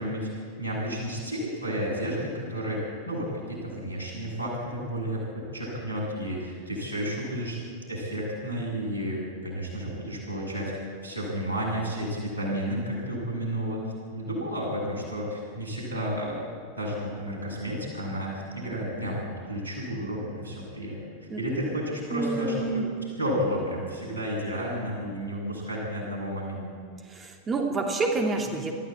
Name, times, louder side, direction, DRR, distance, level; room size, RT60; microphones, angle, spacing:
voice 1, 0.0-7.6 7.9-10.7 11.0-13.8 14.1-16.5 16.8-21.0 21.4-22.8 23.2-26.7, equal, 85° left, -3 dB, 7.6 m, -32 dB
voice 2, 22.1-22.9 27.0-28.7, right 3 dB, 20° right, 3 dB, 2.7 m, -28 dB
22.0 x 14.5 x 8.6 m, 2.1 s
figure-of-eight pair, 90°, 0 cm